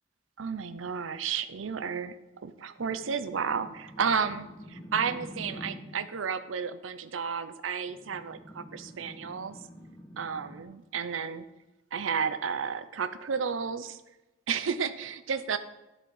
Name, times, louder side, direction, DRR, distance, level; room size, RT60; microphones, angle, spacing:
voice 1, 0.4-2.1 2.4-9.6 10.2-11.5 11.9-14.0 14.5-15.6, right 6 dB, 85° right, 11 dB, 0.6 m, -32 dB
sound 1, 2.8-6.1 7.8-10.6, equal, 10° left, 1.0 m, -46 dB
12.5 x 4.3 x 5.4 m, 1.1 s
head